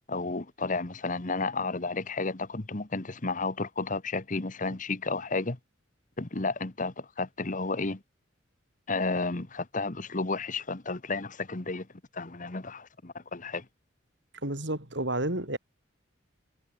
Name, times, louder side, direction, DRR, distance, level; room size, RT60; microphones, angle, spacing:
voice 1, 0.1-5.6 6.2-8.0 8.9-11.9 12.1-13.6, left 3 dB, 40° left, 1.3 m, -32 dB
voice 2, 14.4-15.6, right 1 dB, 65° right, 5.6 m, -30 dB
head